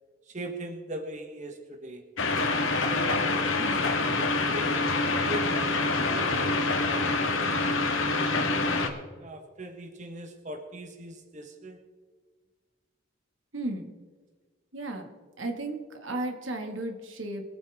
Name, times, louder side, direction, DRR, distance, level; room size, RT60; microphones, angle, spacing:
voice 1, 0.3-2.1 2.8-3.8 4.2-8.5 9.2-11.8, right 1 dB, 40° right, 4 dB, 1.3 m, -41 dB
sound 1, 2.2-8.9, left 3 dB, 85° left, 1.6 m, -26 dB
voice 2, 13.5-13.9 14.7-15.1 15.4-17.4, right 2 dB, 80° right, 4 dB, 1.9 m, -34 dB
23.0 x 9.0 x 3.6 m, 1.5 s
head